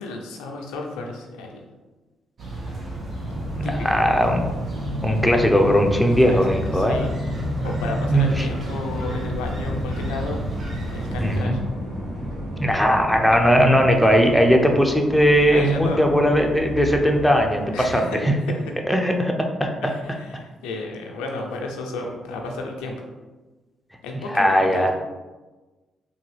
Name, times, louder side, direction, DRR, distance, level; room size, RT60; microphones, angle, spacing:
voice 1, 0.0-1.6 3.6-3.9 5.9-6.4 6.7-7.1 7.6-10.4 10.9-11.6 15.5-16.0 17.7-18.6 19.8-23.1 24.0-24.9, left 2 dB, 85° left, 1 dB, 0.5 m, -32 dB
sound 1, 2.4-11.4, equal, 60° right, 0.8 m, -32 dB
sound 2, 3.1-17.7, equal, 75° right, 1.3 m, -32 dB
voice 2, 3.6-4.5 5.0-7.0 8.1-8.5 11.2-11.6 12.6-18.3 18.9-19.7 24.3-24.9, equal, 5° left, 2 dB, 0.6 m, -19 dB
3.4 x 2.3 x 3.2 m, 1.2 s
supercardioid pair, 55°, 0 cm